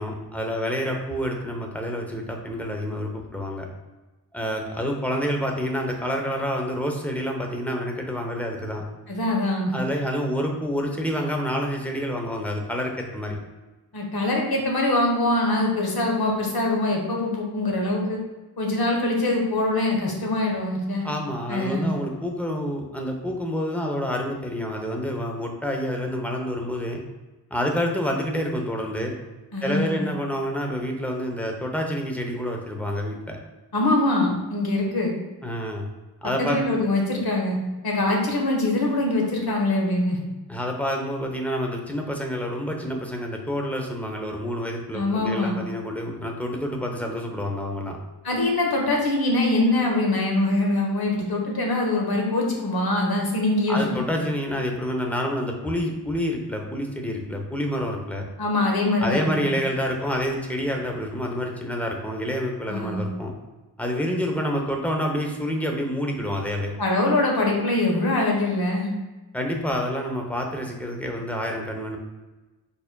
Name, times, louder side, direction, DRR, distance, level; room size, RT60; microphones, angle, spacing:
voice 1, 0.0-3.7 4.3-8.8 9.7-13.4 21.0-27.0 27.5-29.1 29.6-33.4 35.4-35.8 36.2-36.7 40.5-48.0 53.7-58.3 59.0-63.3 63.8-66.7 69.3-72.0, equal, 5° left, 1 dB, 0.8 m, -28 dB
voice 2, 9.1-9.7 13.9-18.2 18.6-21.0 21.5-21.9 29.5-30.0 33.7-35.1 36.4-37.6 37.8-40.2 44.9-45.6 48.2-53.8 58.4-59.6 62.7-63.0 66.8-68.9, left 2 dB, 65° left, 0 dB, 1.2 m, -23 dB
5.1 x 4.7 x 2.2 m, 1.1 s
wide cardioid pair, 95°, 40 cm